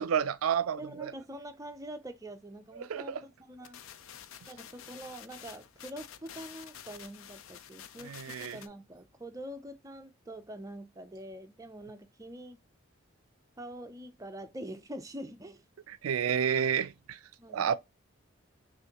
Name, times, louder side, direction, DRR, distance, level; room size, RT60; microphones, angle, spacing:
voice 1, 0.0-1.1 2.8-3.2 8.0-8.6 15.9-17.2 17.5-17.8, right 8 dB, 90° right, 0.4 m, -30 dB
voice 2, 0.8-3.8 4.5-8.1 8.4-12.6 13.6-15.6 17.4-17.8, right 1 dB, 15° right, 0.5 m, -45 dB
sound 1, 3.6-8.7, left 9 dB, 80° left, 0.4 m, -49 dB
6.2 x 2.5 x 2.9 m
head